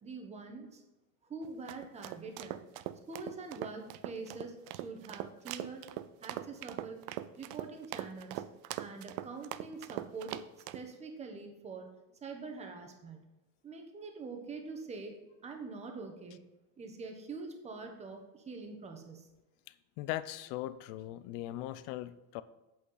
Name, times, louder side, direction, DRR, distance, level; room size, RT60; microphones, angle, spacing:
voice 1, 0.0-0.8 1.2-2.6 3.1-5.9 6.2-7.0 7.4-8.4 8.8-10.4 10.7-11.9 12.2-13.3 13.6-16.4 16.8-19.3, right 4 dB, 20° right, 4 dB, 1.2 m, -45 dB
sound 1, 1.4-10.8, right 14 dB, 70° right, 0.6 m, -41 dB
voice 2, 20.0-22.4, left 14 dB, 70° left, 16 dB, 0.6 m, -39 dB
8.5 x 8.4 x 3.9 m, 0.99 s
cardioid pair, 170°, 37 cm